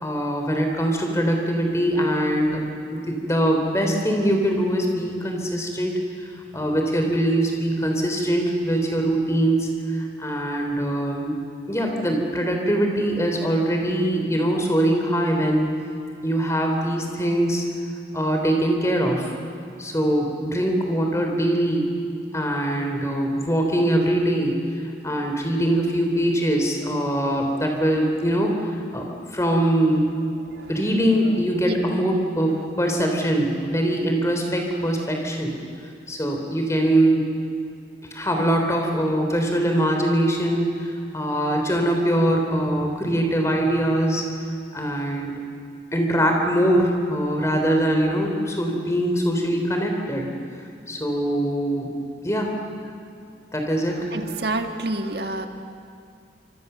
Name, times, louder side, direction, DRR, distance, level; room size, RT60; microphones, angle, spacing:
voice 1, 0.0-2.6 2.9-11.4 11.7-15.7 16.2-17.6 18.1-19.3 19.8-21.9 22.3-24.6 25.0-30.1 30.7-35.5 36.1-37.3 38.1-44.2 44.7-45.3 45.9-50.3 50.9-51.9 52.2-52.5 53.5-54.1, right 1 dB, 15° left, 2 dB, 3.6 m, -22 dB
voice 2, 54.1-55.5, right 2 dB, 60° right, 5 dB, 1.8 m, -28 dB
26.0 x 25.5 x 7.0 m, 2.4 s
head